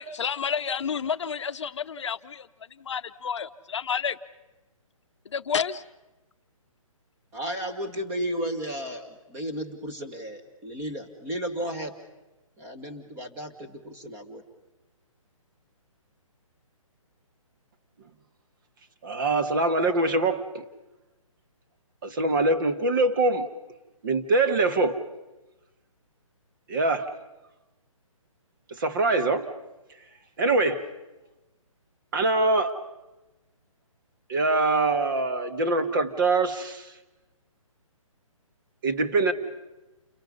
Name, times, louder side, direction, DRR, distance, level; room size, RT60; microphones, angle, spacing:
voice 1, 0.0-2.5 2.9-4.2 5.3-5.8, left 6 dB, 55° left, 10 dB, 0.8 m, -30 dB
voice 2, 7.3-11.9 12.6-14.4, equal, 15° right, 8 dB, 1.8 m, -34 dB
voice 3, 19.0-20.6 22.0-23.5 24.0-25.0 26.7-27.1 28.7-29.5 30.4-30.9 32.1-32.8 34.3-36.9 38.8-39.3, right 2 dB, 35° right, 8 dB, 1.5 m, -24 dB
29.5 x 22.5 x 5.5 m, 1.0 s
hypercardioid pair, 160°, 18 cm